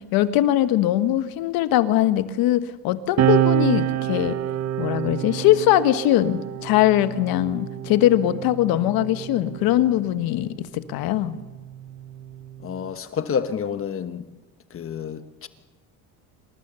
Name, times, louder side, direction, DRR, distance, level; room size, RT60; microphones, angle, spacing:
voice 1, 0.1-4.4 4.8-10.5 10.9-11.4, left 13 dB, 70° left, 1.4 m, -21 dB
sound 1, 3.2-10.1 11.1-12.9, right 11 dB, 45° right, 1.0 m, -27 dB
voice 2, 12.6-14.2 14.7-15.5, left 7 dB, 35° left, 1.2 m, -29 dB
26.5 x 19.0 x 7.0 m
cardioid pair, 120°, 37 cm